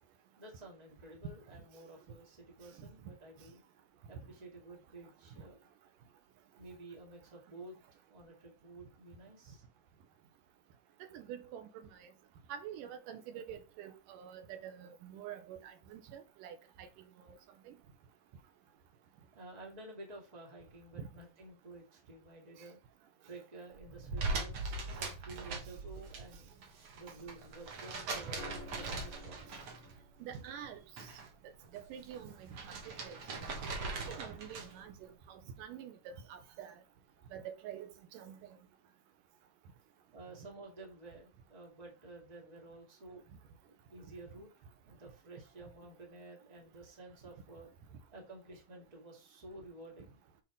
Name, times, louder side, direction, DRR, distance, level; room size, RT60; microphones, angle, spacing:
voice 1, 0.4-3.6 4.1-5.7 6.6-9.6 18.6-18.7 19.3-22.8 23.2-26.5 26.9-29.5 40.1-43.2 43.9-44.5 44.8-47.7 48.1-50.2, right 2 dB, 15° right, 1.6 m, -52 dB
voice 2, 11.0-12.1 12.5-16.9 17.2-17.4 17.7-17.8 21.0-21.1 30.2-30.8 31.7-32.8 33.0-33.2 33.9-36.8 37.3-38.6, right 9 dB, 90° right, 2.5 m, -47 dB
sound 1, 23.7-26.5, right 1 dB, 70° right, 1.3 m, -43 dB
sound 2, 24.2-26.2 26.5-30.0 30.3-31.3 31.6-34.9, right 3 dB, 50° right, 2.1 m, -41 dB
sound 3, 28.4-32.5 34.2-34.6, left 4 dB, 75° left, 2.6 m, -56 dB
8.8 x 4.3 x 3.8 m
omnidirectional pair, 3.7 m